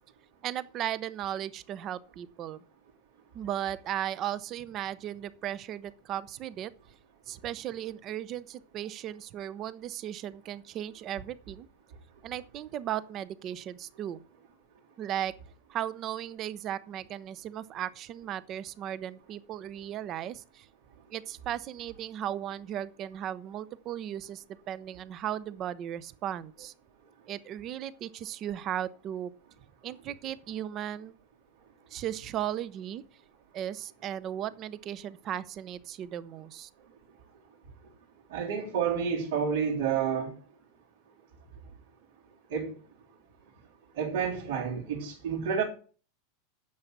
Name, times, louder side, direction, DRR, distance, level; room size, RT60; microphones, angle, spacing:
voice 1, 0.4-2.6 3.3-6.7 7.3-11.7 12.2-14.2 15.0-15.3 15.7-20.7 21.1-26.7 27.3-29.3 29.8-31.1 31.9-33.0 33.5-36.7, right 11 dB, 30° right, 0.7 m, -36 dB
voice 2, 38.3-40.3 42.5-42.8 43.9-45.6, right 7 dB, 80° right, 3.5 m, -29 dB
9.6 x 7.2 x 8.0 m
supercardioid pair, 160°, 0 cm